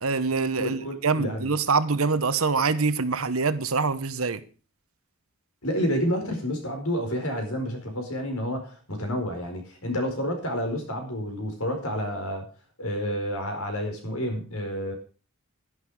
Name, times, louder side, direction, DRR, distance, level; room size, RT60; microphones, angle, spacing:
voice 1, 0.0-4.4, right 4 dB, 70° right, 1.1 m, -25 dB
voice 2, 0.6-1.5 5.6-12.5 12.8-14.9, equal, 85° left, 4.7 m, -29 dB
11.5 x 11.5 x 4.9 m
head